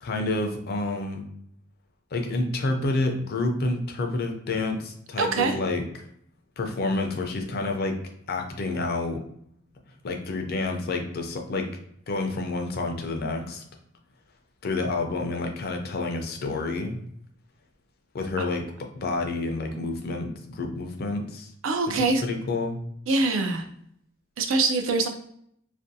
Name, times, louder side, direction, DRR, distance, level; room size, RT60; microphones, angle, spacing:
voice 1, 0.0-1.3 2.1-6.0 6.6-8.0 8.3-9.2 10.0-11.7 12.1-13.6 14.6-17.0 18.1-18.6 19.0-21.5 21.9-22.0 22.2-22.8, left 2 dB, 50° left, 4 dB, 0.4 m, -29 dB
voice 2, 5.2-5.5 21.6-22.2 23.1-23.7 24.4-25.1, right 3 dB, 75° right, 6 dB, 0.4 m, -23 dB
2.5 x 2.2 x 2.6 m, 0.70 s
head